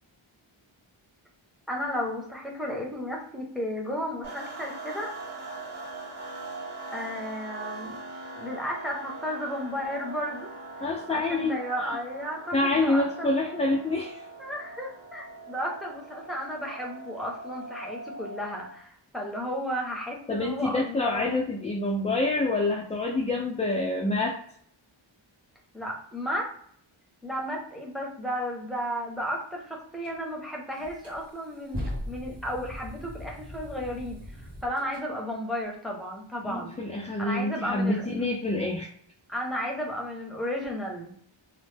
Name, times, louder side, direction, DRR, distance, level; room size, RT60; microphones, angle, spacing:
voice 1, 1.7-5.1 6.9-8.0 8.3-10.5 11.1-13.4 14.4-21.4 25.7-26.5 27.2-36.9 37.2-38.1 39.3-41.2, equal, ahead, -1 dB, 0.7 m, -33 dB
sound 1, 4.2-18.8, right 2 dB, 70° right, 1.4 m, -41 dB
voice 2, 10.8-12.0 12.5-14.2 20.3-24.4 36.4-38.9, left 2 dB, 15° left, 0 dB, 0.3 m, -27 dB
sound 2, 30.0-30.2 30.8-35.1, left 1 dB, 55° right, 1.3 m, -39 dB
3.1 x 2.0 x 3.3 m, 0.63 s
wide cardioid pair, 120°, 48 cm